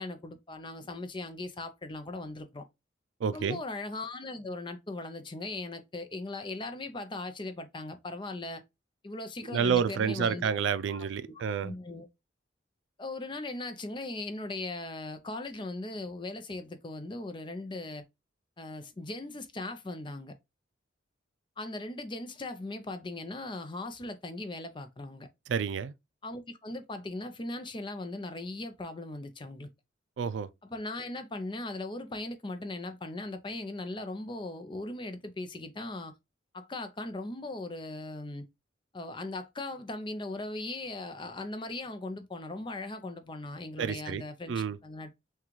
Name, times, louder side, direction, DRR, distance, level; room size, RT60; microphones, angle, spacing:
voice 1, 0.0-2.6 3.3-8.6 9.0-10.5 10.9-11.1 11.6-12.1 13.0-18.0 18.6-20.3 21.6-25.3 26.2-29.7 30.6-36.1 36.5-38.5 38.9-45.2, left 2 dB, 25° left, 0.5 m, -39 dB
voice 2, 3.2-3.6 9.5-11.7 25.5-25.9 30.2-30.5 43.8-44.8, right 6 dB, 80° right, 0.4 m, -29 dB
5.9 x 2.3 x 3.1 m
head